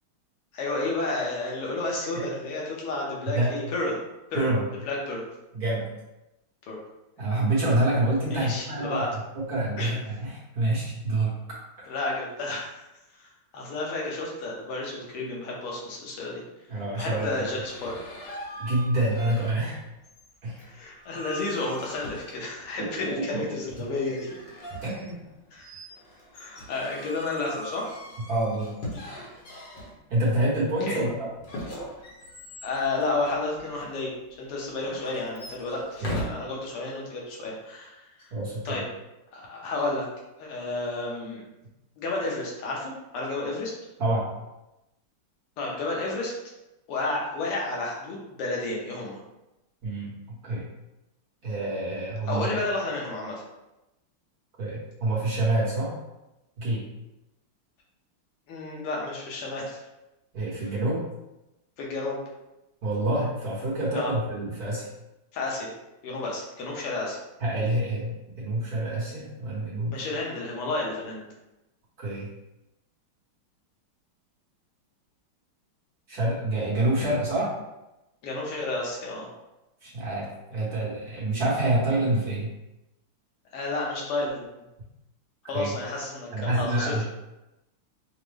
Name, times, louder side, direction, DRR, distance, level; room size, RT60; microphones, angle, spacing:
voice 1, 0.5-4.0 4.3-4.5 4.9-5.2 6.7-6.8 8.3-9.1 9.8-9.9 11.9-12.8 13.2-16.4 16.7-18.0 20.7-24.3 25.5-25.7 26.3-27.9 30.9-31.0 32.6-38.0 38.7-38.8 39.3-40.1 40.4-41.4 42.0-43.7 45.6-46.3 46.9-49.2 52.3-53.4 58.5-59.8 61.8-62.2 63.9-64.1 65.3-65.7 66.0-67.2 69.9-71.3 78.2-79.3 83.5-84.4 85.5-87.1, left 2 dB, 90° left, -3 dB, 1.9 m, -31 dB
voice 2, 5.5-5.9 7.2-9.0 9.3-11.3 11.8-11.9 16.7-17.3 18.6-19.8 20.4-20.6 22.8-23.4 23.8-23.9 24.8-25.2 28.3-28.7 30.1-31.3 36.0-36.2 38.3-38.8 44.0-44.2 49.8-50.7 51.4-52.5 54.6-55.9 56.6-56.8 60.3-61.0 62.8-64.9 67.4-70.1 72.0-72.3 76.1-77.5 79.8-82.5 85.5-85.7 86.3-87.0, right 1 dB, 55° right, -6 dB, 1.2 m, -27 dB
sound 1, 17.0-19.8 20.0-22.7 23.7-30.3 31.4-33.9 34.7-36.2, equal, 60° left, 1.5 m, -41 dB
5.6 x 2.0 x 3.3 m, 0.95 s
omnidirectional pair, 2.4 m